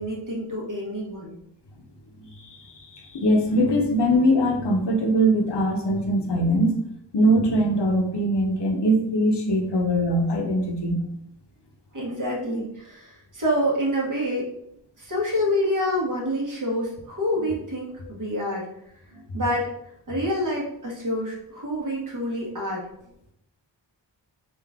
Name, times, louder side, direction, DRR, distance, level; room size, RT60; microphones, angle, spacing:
voice 1, 0.0-1.4 11.9-14.5 15.0-18.7 19.3-19.7 20.1-22.9, equal, 45° right, -3 dB, 1.2 m, -27 dB
voice 2, 2.2-6.7 7.1-11.0, equal, 65° left, 1 dB, 0.8 m, -22 dB
3.8 x 2.5 x 3.5 m, 0.78 s
wide cardioid pair, 80°, 45 cm